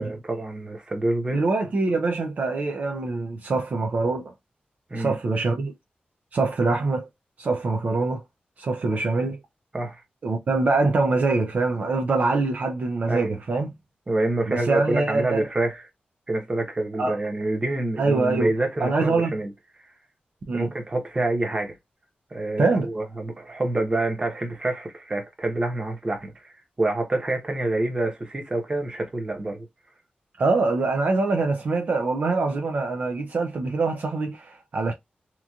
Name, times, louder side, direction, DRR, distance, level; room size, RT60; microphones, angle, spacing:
voice 1, 0.0-1.4 4.9-5.2 9.7-10.0 13.1-13.4 14.1-15.8 16.3-19.5 20.5-21.7 22.3-29.7, right 2 dB, 30° right, 1.0 m, -27 dB
voice 2, 1.3-4.3 4.9-5.7 6.3-7.0 7.4-8.2 8.6-9.4 10.2-13.8 14.5-15.5 17.0-17.2 18.0-18.5 18.8-19.4 20.5-20.7 22.6-22.9 30.4-34.9, right 3 dB, 55° right, 0.5 m, -24 dB
2.9 x 2.5 x 2.3 m
wide cardioid pair, 125°, 3 cm